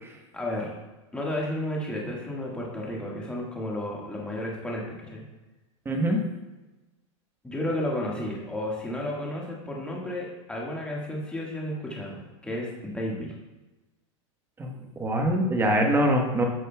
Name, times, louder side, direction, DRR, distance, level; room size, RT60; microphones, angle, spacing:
voice 1, 0.3-0.7 1.1-5.2 7.4-13.3, left 1 dB, 5° left, -3 dB, 1.6 m, -32 dB
voice 2, 5.8-6.2 14.6-16.5, right 1 dB, 15° right, 2 dB, 1.1 m, -24 dB
8.9 x 6.4 x 2.3 m, 1.1 s
hypercardioid pair, 125°, 16 cm